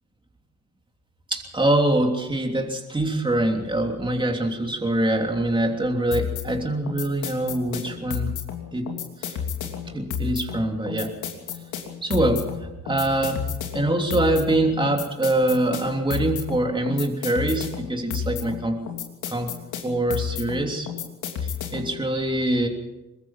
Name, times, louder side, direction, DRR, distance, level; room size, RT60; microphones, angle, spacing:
voice 1, 1.3-8.3 8.7-9.4 9.9-11.1 12.0-13.4 13.7-18.8 19.3-19.5 19.8-20.9 21.4-22.7, right 1 dB, 15° right, 2 dB, 3.2 m, -24 dB
sound 1, 6.1-22.0, left 8 dB, 85° left, 3.1 m, -31 dB
23.0 x 20.5 x 5.7 m, 1.0 s
cardioid pair, 90°, 30 cm